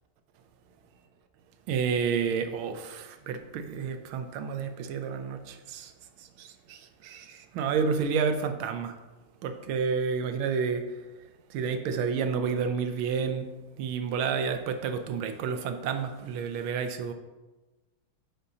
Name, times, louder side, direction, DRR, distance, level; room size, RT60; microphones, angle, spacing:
voice 1, 1.7-5.9 6.4-8.9 9.4-10.9 11.5-13.5 13.8-17.1, right 6 dB, 80° right, 7 dB, 1.5 m, -30 dB
8.8 x 5.6 x 2.8 m, 1.2 s
omnidirectional pair, 2.2 m